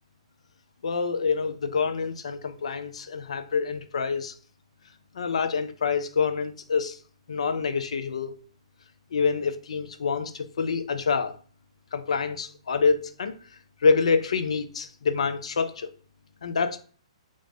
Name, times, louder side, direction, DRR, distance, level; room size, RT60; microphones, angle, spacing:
voice 1, 0.8-4.3 5.2-7.0 7.3-8.3 9.1-11.4 11.9-13.3 13.8-15.9 16.4-16.8, left 5 dB, 75° left, 0.4 m, -26 dB
3.5 x 2.5 x 3.8 m
hypercardioid pair, 130°, 3 cm